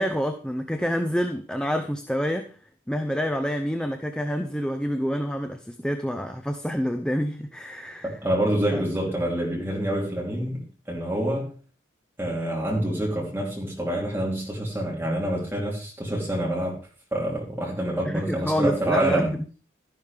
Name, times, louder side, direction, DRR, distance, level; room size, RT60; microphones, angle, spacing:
voice 1, 0.0-2.6 2.9-8.1 8.7-8.8 18.1-19.2, equal, 5° left, 0.7 m, -27 dB
voice 2, 8.0-11.5 12.2-16.8 17.1-19.3, right 1 dB, 10° right, 3.2 m, -27 dB
12.5 x 11.5 x 3.5 m
head